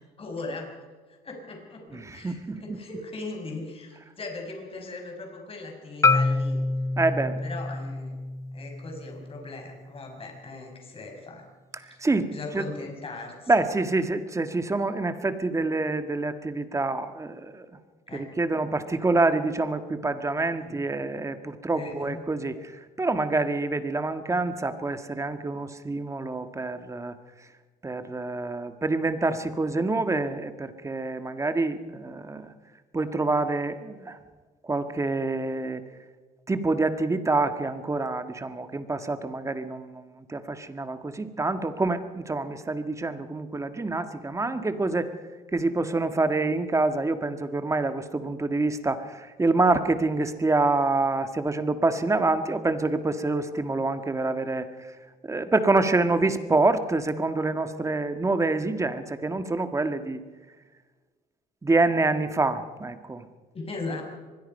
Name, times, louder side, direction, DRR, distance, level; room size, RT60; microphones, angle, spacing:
voice 1, 0.2-0.7 1.2-6.6 7.4-8.1 8.5-11.5 11.8-12.0 12.3-13.5 18.1-18.3 20.6-20.8 21.7-22.2 63.5-64.0, left 3 dB, 35° left, 3 dB, 6.0 m, -38 dB
voice 2, 1.9-2.8 7.0-7.4 11.7-12.7 13.5-17.7 18.1-27.2 27.8-32.5 32.9-34.2 34.6-35.8 36.5-45.1 45.5-55.0 55.2-60.2 61.6-63.3, right 3 dB, 15° right, 9 dB, 1.6 m, -26 dB
Marimba xylophone, 6.0-10.2, left 3 dB, 15° left, 0.6 m, -27 dB
24.5 x 21.0 x 5.5 m, 1.3 s
cardioid pair, 110°, 17 cm